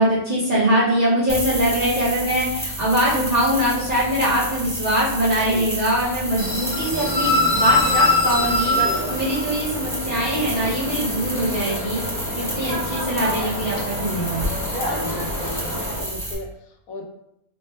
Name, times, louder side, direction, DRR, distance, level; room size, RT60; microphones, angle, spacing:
voice 1, 0.0-8.8 9.1-12.0 12.3-14.5, right 1 dB, 35° right, -8 dB, 0.7 m, -22 dB
sound 1, 1.3-16.3, right 1 dB, 5° left, 0.5 m, -30 dB
sound 2, 6.4-16.0, left 2 dB, 50° left, 0.7 m, -24 dB
sound 3, 6.9-9.9, right 4 dB, 65° right, 0.9 m, -37 dB
voice 2, 8.7-9.2 12.3-12.7 14.9-17.0, left 2 dB, 80° left, 3 dB, 1.0 m, -37 dB
3.4 x 2.1 x 4.1 m, 0.80 s
omnidirectional pair, 1.5 m